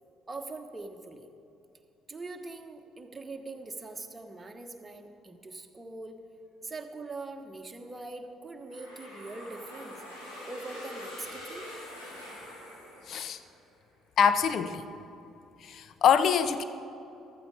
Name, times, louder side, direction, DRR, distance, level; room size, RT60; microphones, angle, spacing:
voice 1, 0.3-1.3 2.1-6.2 6.6-10.0 10.4-11.7, right 3 dB, 25° right, 5 dB, 1.3 m, -42 dB
sound 1, 8.7-13.6, left 1 dB, 80° left, 3.5 m, -44 dB
voice 2, 13.1-13.4 14.2-14.9 15.6-16.6, left 7 dB, 50° left, 12 dB, 0.7 m, -24 dB
14.5 x 12.5 x 5.1 m, 2.8 s
figure-of-eight pair, 50°, 0 cm